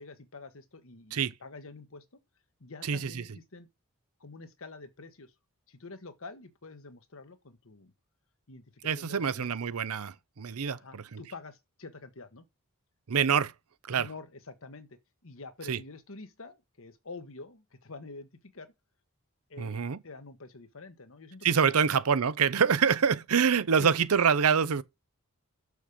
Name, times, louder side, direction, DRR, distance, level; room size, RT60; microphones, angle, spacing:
voice 1, 0.0-2.2 2.6-3.7 4.2-5.3 5.7-7.9 8.5-9.7 10.7-12.5 13.9-18.7 19.5-22.0 23.8-23.9, left 3 dB, 65° left, 1.3 m, -47 dB
voice 2, 2.8-3.2 8.8-11.2 13.1-13.5 13.9-14.1 15.7-15.8 19.6-20.0 21.4-24.8, right 6 dB, 80° right, 0.6 m, -26 dB
6.6 x 6.4 x 5.0 m
head